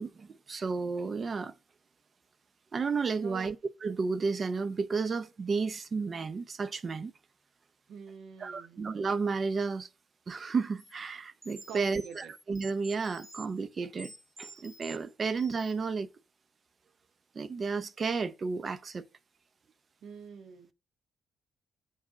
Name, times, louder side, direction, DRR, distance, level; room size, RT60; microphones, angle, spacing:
voice 1, 0.0-1.5 2.7-3.6 3.8-7.1 8.4-9.9 10.3-14.1 14.4-16.1 17.3-19.1, right 4 dB, 40° right, 0.6 m, -32 dB
voice 2, 3.2-3.5 7.9-8.8 11.7-12.3 20.0-20.7, right 7 dB, 70° right, 0.9 m, -46 dB
sound 1, 10.8-10.9 11.4-13.5 14.0-15.0 15.4-15.9, right 2 dB, 10° right, 1.9 m, -50 dB
7.2 x 4.2 x 6.0 m
cardioid pair, 90°, 0 cm